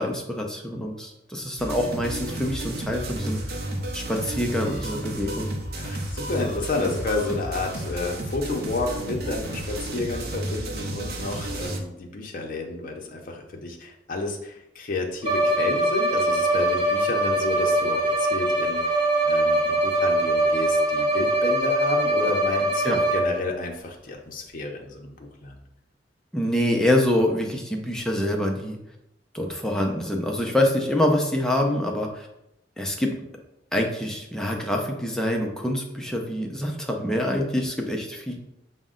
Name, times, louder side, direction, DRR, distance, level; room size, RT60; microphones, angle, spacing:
voice 1, 0.0-3.4 3.9-5.5 22.8-23.0 26.3-28.8 29.3-32.3 32.8-33.1 33.7-38.4, left 1 dB, 5° left, 1 dB, 0.5 m, -25 dB
sound 1, 1.6-11.8, right 1 dB, 55° right, 0.6 m, -32 dB
voice 2, 5.7-25.6, left 3 dB, 50° left, 1 dB, 0.6 m, -31 dB
Bowed string instrument, 15.2-23.5, right 1 dB, 30° right, 1.1 m, -22 dB
5.1 x 2.1 x 3.7 m, 0.84 s
head